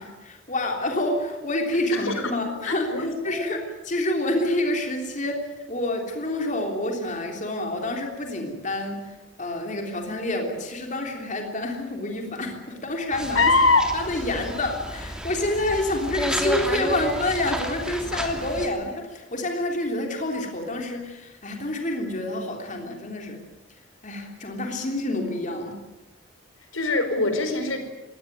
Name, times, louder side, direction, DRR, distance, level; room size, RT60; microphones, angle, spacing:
voice 1, 0.0-13.5 13.9-23.4 24.0-25.8, left 1 dB, 40° left, 3 dB, 3.5 m, -28 dB
voice 2, 1.9-2.3 2.6-3.4 13.3-13.9 26.7-27.8, left 3 dB, 90° left, 8 dB, 4.5 m, -22 dB
sound 1, 13.1-18.7, equal, 5° right, 2.9 m, -31 dB
22.0 x 18.0 x 9.4 m, 1.1 s
head